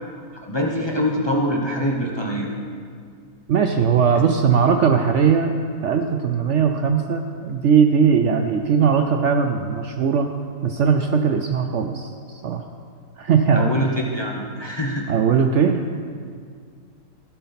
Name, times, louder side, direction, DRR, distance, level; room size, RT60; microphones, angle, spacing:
voice 1, 0.4-2.5 13.5-15.1, equal, 20° left, -2 dB, 1.0 m, -24 dB
voice 2, 3.5-5.5 5.8-10.3 10.6-12.1 12.4-12.6 13.2-13.7 15.1-15.8, right 6 dB, 65° right, 6 dB, 0.8 m, -19 dB
15.0 x 8.0 x 4.2 m, 2.1 s
omnidirectional pair, 1.6 m